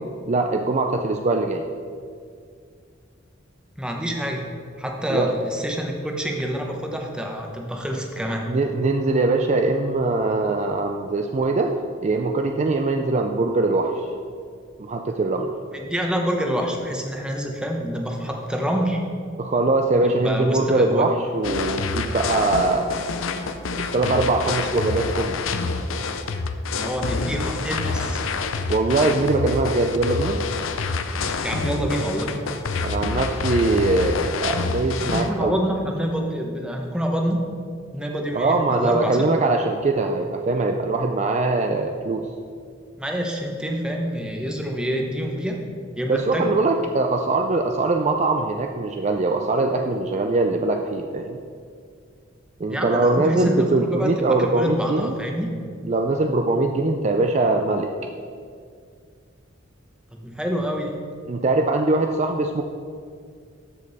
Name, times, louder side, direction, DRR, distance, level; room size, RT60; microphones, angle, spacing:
voice 1, 0.3-1.6 5.1-5.3 8.5-11.8 12.0-13.9 14.8-15.5 19.4-22.9 23.8-25.4 28.7-30.4 32.8-35.6 38.3-42.2 46.1-51.4 52.6-55.1 55.8-57.9 61.3-62.6, right 2 dB, 35° right, 4 dB, 0.4 m, -22 dB
voice 2, 3.8-4.5 4.8-8.5 15.7-19.0 20.0-21.0 26.7-28.2 31.4-32.3 34.9-37.4 37.9-39.2 43.0-45.6 46.0-46.5 52.7-55.5 60.1-61.0, equal, 5° right, 1 dB, 0.9 m, -27 dB
sound 1, 21.4-35.3, left 4 dB, 90° left, 0.6 m, -27 dB
13.5 x 5.3 x 4.1 m, 2.2 s
head